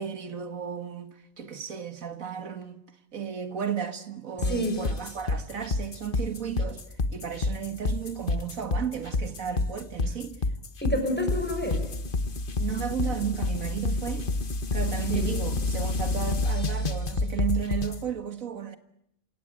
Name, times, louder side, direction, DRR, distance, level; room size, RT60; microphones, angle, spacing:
voice 1, 0.0-2.8 3.1-6.8 7.1-10.4 12.6-14.3 14.7-18.8, right 8 dB, 90° right, 2.1 m, -34 dB
sound 1, 4.4-18.0, left 2 dB, 40° left, 1.4 m, -28 dB
voice 2, 4.4-4.8 10.8-11.8 15.1-15.3, equal, 5° left, 5.8 m, -28 dB
28.5 x 17.5 x 8.9 m
omnidirectional pair, 1.4 m